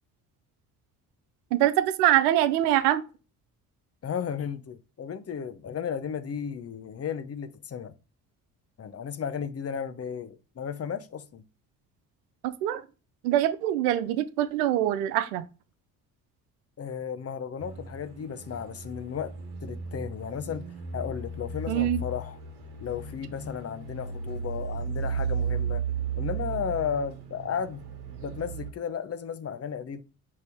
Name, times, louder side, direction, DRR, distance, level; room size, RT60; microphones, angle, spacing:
voice 1, 1.5-3.0 12.4-12.8 13.2-15.4 21.7-22.0, right 13 dB, 80° right, 0.6 m, -24 dB
voice 2, 4.0-7.9 8.8-11.4 16.8-19.3 19.6-20.7 20.9-22.4 22.8-25.8 26.2-27.8 28.2-30.0, left 7 dB, 35° left, 0.7 m, -34 dB
sound 1, 17.6-28.7, right 5 dB, 60° right, 1.4 m, -35 dB
5.2 x 2.7 x 3.5 m
hypercardioid pair, 55°, 45 cm